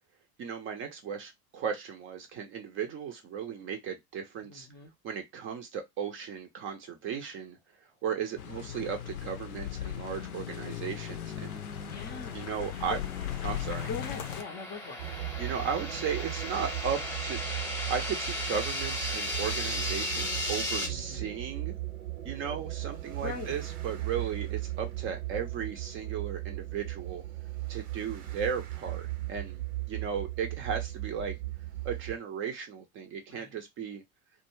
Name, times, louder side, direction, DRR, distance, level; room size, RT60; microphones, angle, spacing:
voice 1, 0.4-4.7 5.0-7.6 8.0-11.6 12.3-13.0 13.4-13.9 15.4-17.4 17.9-21.7 22.2-27.2 27.7-29.0 29.3-29.6 29.9-31.4 31.8-34.0, right 7 dB, 30° right, 0.5 m, -36 dB
voice 2, 4.4-4.9 11.9-13.0 13.8-15.0 20.8-21.3 23.2-23.6 33.3-33.5, left 5 dB, 25° left, 0.5 m, -42 dB
sound 1, 8.4-14.4, left 10 dB, 75° left, 0.6 m, -37 dB
sound 2, 10.4-20.9, left 1 dB, 5° left, 0.9 m, -37 dB
sound 3, 15.0-32.2, right 16 dB, 75° right, 0.7 m, -37 dB
2.3 x 2.1 x 3.0 m
figure-of-eight pair, 80°, 44 cm